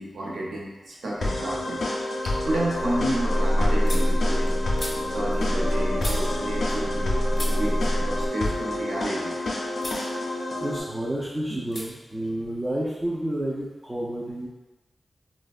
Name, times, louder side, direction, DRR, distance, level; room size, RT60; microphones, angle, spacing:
voice 1, 0.0-4.6 5.1-9.3 11.5-11.6, right 1 dB, 90° right, -4 dB, 0.5 m, -31 dB
sound 1, 1.2-10.8, left 1 dB, 80° left, 0.4 m, -29 dB
sound 2, 2.1-7.1 7.3-9.4 9.8-10.1 10.4-11.2 11.7-11.9 12.1-13.2, left 1 dB, 35° left, 0.6 m, -41 dB
sound 3, 2.4-8.3, equal, 60° right, 0.9 m, -26 dB
voice 2, 10.6-14.5, right 1 dB, 10° right, -7 dB, 0.3 m, -30 dB
3.3 x 2.1 x 2.3 m, 1.2 s
wide cardioid pair, 175°, 0 cm